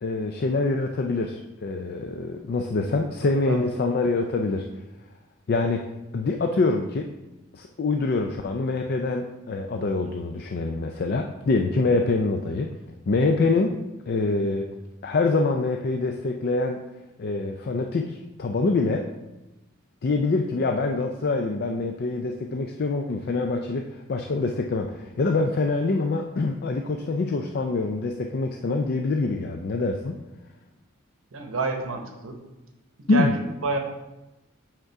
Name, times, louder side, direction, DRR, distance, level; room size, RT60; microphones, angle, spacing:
voice 1, 0.0-4.7 5.5-5.9 6.1-7.1 7.5-12.7 13.1-14.7 15.0-16.8 17.2-19.1 20.0-30.2 33.1-33.3, left 3 dB, 45° left, 4 dB, 0.4 m, -25 dB
voice 2, 31.3-32.4 33.0-33.8, right 3 dB, 70° right, 4 dB, 1.0 m, -29 dB
7.9 x 3.7 x 4.7 m, 1.0 s
head